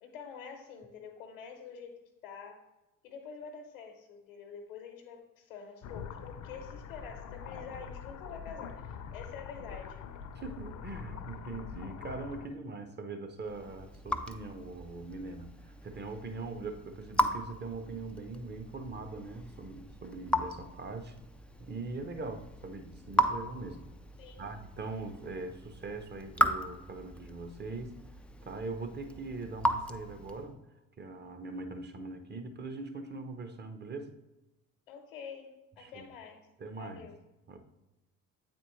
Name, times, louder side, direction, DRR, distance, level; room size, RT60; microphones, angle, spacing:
voice 1, 0.0-2.6 3.0-8.9 9.1-10.0 24.2-24.5 34.9-36.5 36.7-37.2, left 6 dB, 85° left, 1 dB, 1.0 m, -47 dB
sound 1, 5.8-12.5, left 7 dB, 50° left, 0.6 m, -44 dB
voice 2, 10.3-21.2 21.6-23.9 24.4-28.0 28.4-30.6 31.0-34.1 35.8-36.1 36.6-37.1 37.5-37.6, right 3 dB, 25° right, 7 dB, 0.8 m, -41 dB
Raindrop / Drip, 13.4-30.6, equal, 5° left, 0.3 m, -36 dB
8.0 x 4.3 x 3.1 m, 0.99 s
hypercardioid pair, 60°, 39 cm